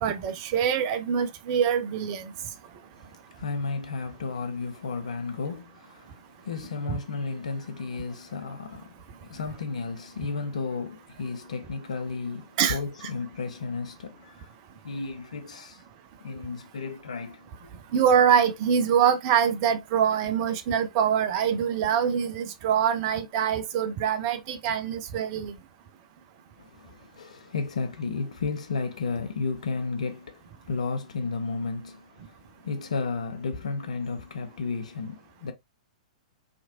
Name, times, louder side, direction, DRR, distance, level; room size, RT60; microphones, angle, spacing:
voice 1, 0.0-2.3 6.9-7.0 12.6-12.8 17.9-25.6, right 8 dB, 40° right, 0.5 m, -24 dB
voice 2, 3.3-14.5 14.8-15.8 16.2-17.7 26.6-35.5, left 4 dB, 65° left, 0.6 m, -33 dB
2.8 x 2.5 x 2.7 m
figure-of-eight pair, 105°, 4 cm